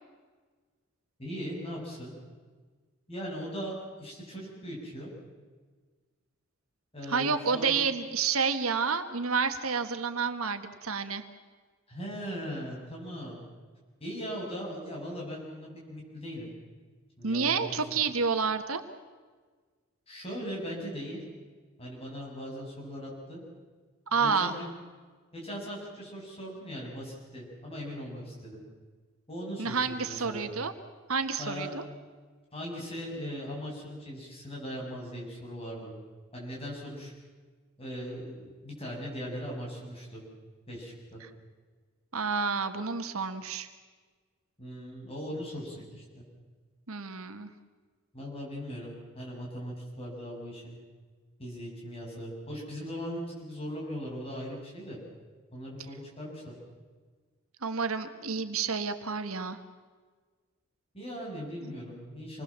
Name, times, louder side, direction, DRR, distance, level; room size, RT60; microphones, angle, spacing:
voice 1, 1.2-2.1 3.1-5.1 6.9-7.7 11.9-13.4 14.0-16.5 17.2-17.8 20.1-21.2 21.8-23.4 24.1-24.7 25.3-28.6 29.3-30.5 31.4-31.7 32.5-35.9 36.3-37.1 37.8-40.2 40.7-41.2 44.6-46.2 48.1-50.8 51.4-55.0 55.5-56.5 60.9-62.4, equal, 25° left, -3 dB, 7.8 m, -39 dB
voice 2, 7.1-11.2 17.2-18.8 24.1-24.5 29.6-30.7 31.1-31.8 42.1-43.7 46.9-47.5 57.6-59.6, right 5 dB, 85° right, 9 dB, 1.6 m, -29 dB
27.0 x 20.5 x 7.5 m, 1.4 s
head